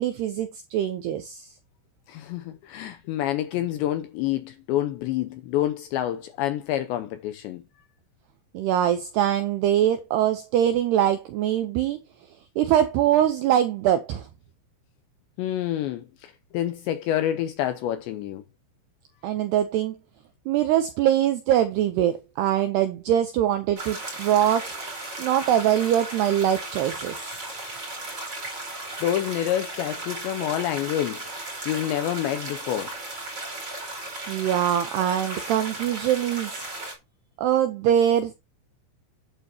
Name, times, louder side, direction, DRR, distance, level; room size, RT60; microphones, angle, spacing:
voice 1, 0.0-1.5 8.5-12.0 12.6-14.3 19.2-20.0 20.5-24.7 25.2-27.2 34.3-36.7 37.4-38.3, right 11 dB, 85° right, 2.3 m, -23 dB
voice 2, 2.1-7.6 15.4-18.4 29.0-33.0, left 12 dB, 80° left, 2.6 m, -28 dB
sound 1, 23.8-36.9, right 2 dB, 20° right, 4.5 m, -36 dB
10.0 x 9.2 x 2.9 m
omnidirectional pair, 5.9 m